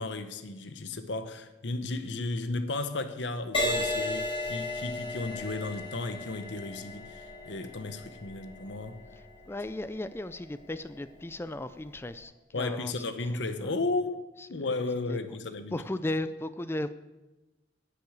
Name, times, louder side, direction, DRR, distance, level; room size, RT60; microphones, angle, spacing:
voice 1, 0.0-9.0 12.5-14.1 14.5-15.8, left 3 dB, 75° left, 9 dB, 0.9 m, -34 dB
Crash cymbal, 3.5-11.2 11.9-12.2, left 2 dB, 30° left, 5.1 m, -35 dB
voice 2, 9.5-12.9 13.2-13.8 14.6-14.7 15.1-15.2 15.7-16.9, left 1 dB, 15° left, 13 dB, 0.4 m, -36 dB
11.5 x 6.7 x 8.6 m, 1.1 s
head